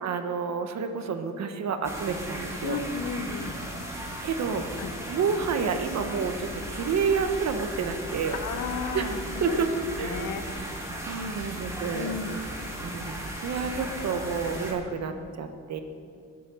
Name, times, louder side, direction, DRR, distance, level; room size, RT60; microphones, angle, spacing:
voice 1, 0.0-2.8 3.9-8.4 8.9-9.1 9.4-9.7 10.0-10.3 10.9-12.1 12.8-15.8, right 5 dB, 60° right, 7 dB, 1.4 m, -30 dB
sound 1, 1.8-14.7, right 1 dB, 10° right, 3.3 m, -36 dB
voice 2, 2.6-3.5 4.8-4.9 8.3-9.6 10.0-10.8 11.9-12.3, left 6 dB, 85° left, 8 dB, 1.3 m, -34 dB
20.0 x 7.7 x 6.4 m, 2.5 s
cardioid pair, 90°, 30 cm